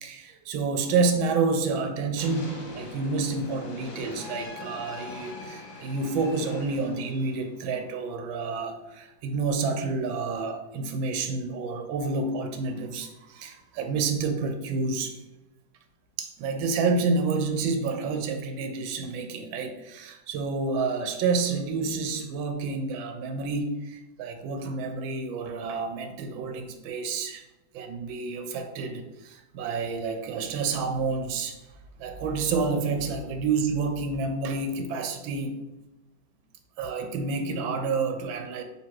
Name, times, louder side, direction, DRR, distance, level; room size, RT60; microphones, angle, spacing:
voice 1, 0.0-15.1 16.2-27.4 27.7-31.6 32.0-35.6 36.8-38.6, right 4 dB, 90° right, 6 dB, 1.4 m, -29 dB
sound 1, 2.2-7.6, left 3 dB, 55° left, 1.0 m, -42 dB
3.9 x 2.9 x 4.5 m, 1.0 s
omnidirectional pair, 2.1 m